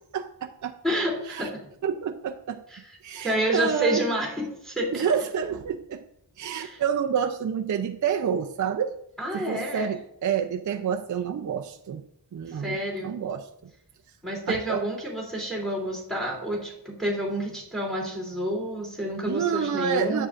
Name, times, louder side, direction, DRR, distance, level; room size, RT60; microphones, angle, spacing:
voice 1, 0.1-0.7 1.3-1.5 1.8-2.6 3.0-4.0 4.9-6.0 6.4-8.9 9.3-12.0 12.3-13.7 14.5-14.8 19.3-20.3, right 7 dB, 45° right, 4 dB, 0.5 m, -28 dB
voice 2, 0.8-1.6 2.7-2.8 3.2-5.0 6.5-6.8 9.2-9.9 12.5-13.1 14.2-20.3, right 1 dB, ahead, -1 dB, 3.0 m, -29 dB
9.5 x 7.8 x 2.5 m, 0.77 s
wide cardioid pair, 120°, 42 cm